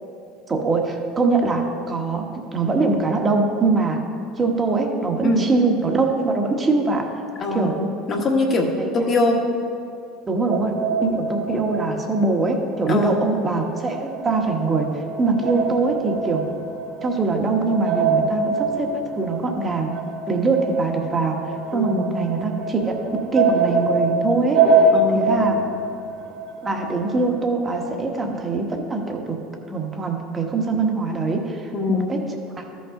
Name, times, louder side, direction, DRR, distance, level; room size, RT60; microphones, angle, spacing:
voice 1, 0.5-4.0 4.4-7.1 7.5-7.8 8.8-8.9 10.3-10.7 11.0-16.4 17.0-19.9 20.3-24.7 25.1-25.6 26.6-29.4 29.7-32.6, right 3 dB, 25° right, 2 dB, 1.3 m, -23 dB
voice 2, 7.4-9.4 12.9-13.2 21.7-22.1 24.9-25.2 31.7-32.1, left 2 dB, 40° left, 2 dB, 1.4 m, -22 dB
sound 1, 10.5-13.1 13.3-27.2, right 3 dB, 70° right, 1.2 m, -24 dB
13.0 x 5.6 x 3.8 m, 2.6 s
hypercardioid pair, 90°, 0 cm